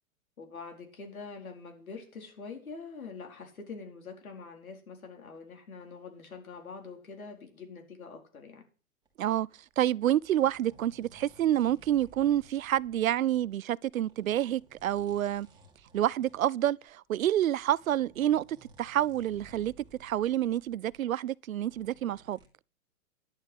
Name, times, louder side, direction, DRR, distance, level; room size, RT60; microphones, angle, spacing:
voice 1, 0.4-8.6, left 4 dB, 85° left, 4.3 m, -45 dB
sound 1, 9.1-13.6 13.8-21.0 21.5-22.5, right 1 dB, 10° right, 2.6 m, -58 dB
voice 2, 9.2-9.5 9.8-15.5 15.9-19.7 20.0-22.4, right 12 dB, 80° right, 0.6 m, -28 dB
11.0 x 7.9 x 8.4 m
hypercardioid pair, 130°, 41 cm